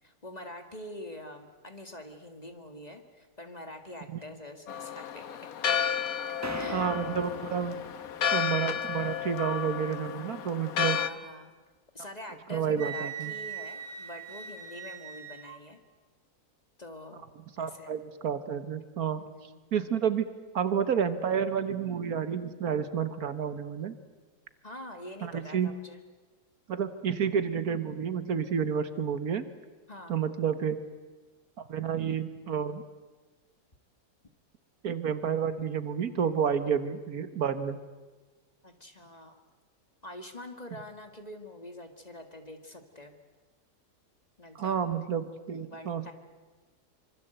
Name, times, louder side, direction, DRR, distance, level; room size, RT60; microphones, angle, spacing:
voice 1, 0.0-5.2 6.5-6.9 7.6-7.9 10.9-11.5 11.9-15.8 16.8-17.3 17.6-17.9 19.2-19.6 24.6-26.0 29.9-30.1 38.6-39.4 40.0-43.2 44.4-44.8 45.4-46.1, left 1 dB, 25° left, 6 dB, 2.0 m, -45 dB
Church bell, 4.7-11.1, left 8 dB, 65° left, 1.4 m, -32 dB
sound 1, 6.4-8.8, right 1 dB, 10° right, 1.3 m, -41 dB
voice 2, 6.7-7.8 8.3-11.0 12.5-13.3 17.6-19.2 19.7-24.0 25.2-25.7 26.7-29.4 30.1-30.8 31.6-32.8 34.8-37.8 44.5-46.1, right 7 dB, 65° right, 11 dB, 1.6 m, -30 dB
Wind instrument woodwind instrument, 12.8-15.6, right 8 dB, 45° right, 1.8 m, -40 dB
25.5 x 24.5 x 8.0 m, 1.3 s
omnidirectional pair, 1.7 m